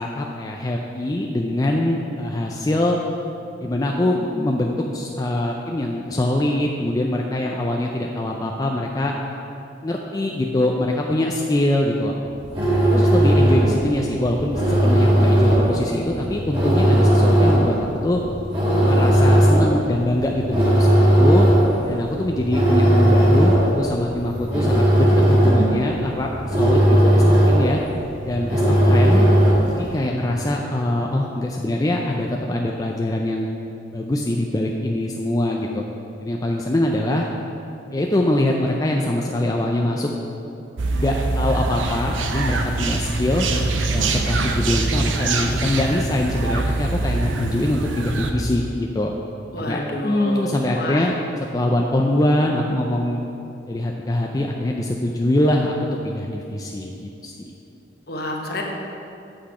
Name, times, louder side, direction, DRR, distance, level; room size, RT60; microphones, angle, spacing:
voice 1, 0.0-3.0 3.6-9.1 9.8-12.1 12.9-18.2 18.8-21.5 21.9-27.8 28.3-29.3 29.8-33.5 33.9-35.8 36.2-37.3 37.9-40.1 40.9-43.5 43.9-49.1 49.6-51.2 51.5-53.2 53.7-57.5, left 1 dB, 20° left, 0 dB, 0.4 m, -23 dB
sound 1, 12.3-29.9, right 1 dB, 25° right, 1.9 m, -17 dB
sound 2, 40.8-48.3, right 2 dB, 85° right, 0.6 m, -23 dB
voice 2, 49.5-51.1 58.1-58.6, left 1 dB, 55° left, 1 dB, 1.0 m, -28 dB
8.5 x 5.8 x 4.9 m, 2.9 s
head